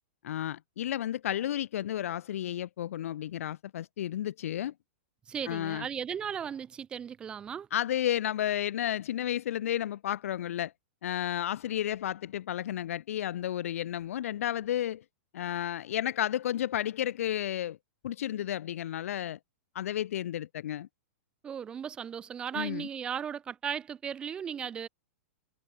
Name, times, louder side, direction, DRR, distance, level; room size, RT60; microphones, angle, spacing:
voice 1, 0.2-4.7 5.5-5.9 7.7-10.7 11.0-15.0 15.3-17.8 18.0-19.4 19.7-20.9 22.5-22.9, left 11 dB, 80° left, 0.4 m, -32 dB
voice 2, 5.3-7.7 21.4-24.9, right 8 dB, 10° right, 0.4 m, -36 dB
supercardioid pair, 160°, 8 cm